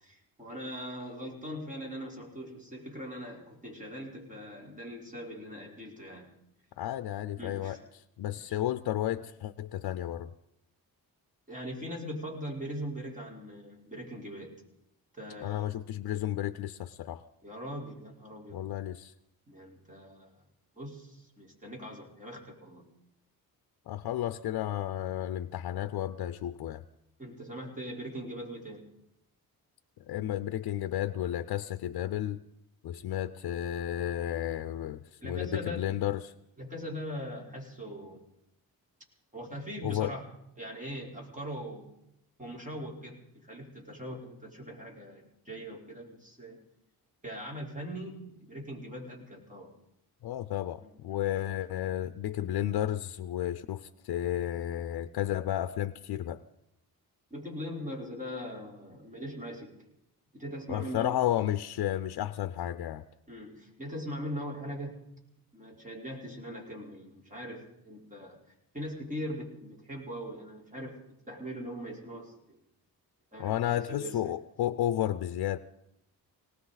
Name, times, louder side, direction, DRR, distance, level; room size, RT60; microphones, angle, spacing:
voice 1, 0.0-6.3 7.4-7.8 8.4-8.6 11.5-14.6 15.1-15.7 17.4-18.7 19.5-20.4 20.8-22.9 24.7-24.8 27.2-28.9 35.2-36.0 36.6-38.2 39.3-40.3 40.6-41.9 42.4-46.6 47.2-49.7 50.8-51.2 57.3-59.8 60.3-61.2 63.3-65.0 65.5-68.4 68.7-71.0 71.3-72.6 73.3-74.3, equal, 20° right, -1 dB, 4.1 m, -41 dB
voice 2, 6.8-7.8 8.2-10.3 15.4-17.2 18.5-19.1 23.9-26.8 30.1-32.4 32.8-36.3 39.8-40.1 50.2-56.4 60.7-63.0 73.4-75.6, left 12 dB, 80° left, 12 dB, 0.6 m, -32 dB
19.0 x 18.5 x 4.0 m, 0.79 s
cardioid pair, 110°, 38 cm